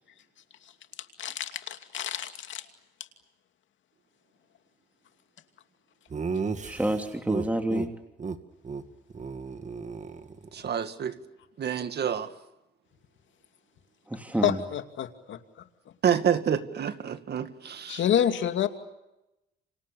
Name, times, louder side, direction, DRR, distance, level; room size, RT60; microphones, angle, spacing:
voice 1, 1.2-2.7 14.4-15.4 17.9-18.7, left 10 dB, 70° left, 7 dB, 2.6 m, -28 dB
Laughter, 6.1-7.9 8.2-8.4 8.6-8.8 9.1-10.7, right 5 dB, 35° right, 2.2 m, -34 dB
voice 2, 6.6-7.9 14.1-14.6, right 1 dB, 5° right, 5 dB, 2.9 m, -28 dB
voice 3, 10.5-11.2 11.6-12.3 16.0-18.0, right 8 dB, 55° right, 10 dB, 2.1 m, -28 dB
30.0 x 26.5 x 7.0 m, 0.95 s
cardioid pair, 90°, 20 cm